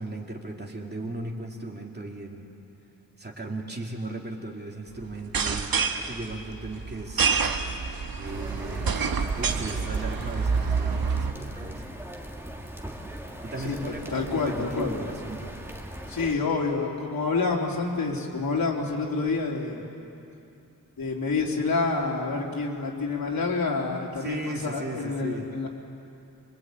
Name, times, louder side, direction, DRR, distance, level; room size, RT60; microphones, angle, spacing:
voice 1, 0.0-2.5 3.2-7.3 7.7-7.8 8.2-9.0 9.3-11.8 13.4-15.6 24.2-25.5, right 2 dB, 30° right, 0 dB, 2.6 m, -37 dB
sound 1, 5.2-11.3, right 5 dB, 80° right, 1.4 m, -27 dB
sound 2, 8.2-16.4, right 1 dB, 5° right, 2.0 m, -39 dB
voice 2, 13.6-14.9 16.1-19.8 21.0-25.7, left 4 dB, 80° left, -2 dB, 3.7 m, -28 dB
25.0 x 24.0 x 8.9 m, 2.7 s
wide cardioid pair, 155°, 35 cm